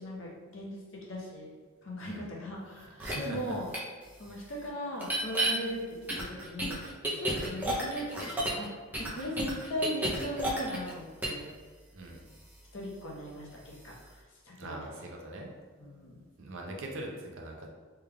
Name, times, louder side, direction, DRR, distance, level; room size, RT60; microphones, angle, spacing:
voice 1, 0.0-1.5 1.8-3.7 4.2-5.8 6.2-6.8 7.2-8.1 8.4-11.5 12.7-14.9 15.8-16.3, equal, 60° left, -3 dB, 0.8 m, -39 dB
sound 1, 3.0-3.1 3.7-3.8 5.0-5.5 6.1-8.7 8.9-10.9 11.2-11.4, right 1 dB, 10° right, 0.4 m, -31 dB
voice 2, 3.0-3.6 4.3-4.4 7.3-7.5 11.9-12.2 14.6-15.5 16.4-17.7, right 1 dB, 60° right, 0 dB, 0.5 m, -41 dB
3.4 x 2.3 x 3.3 m, 1.4 s
head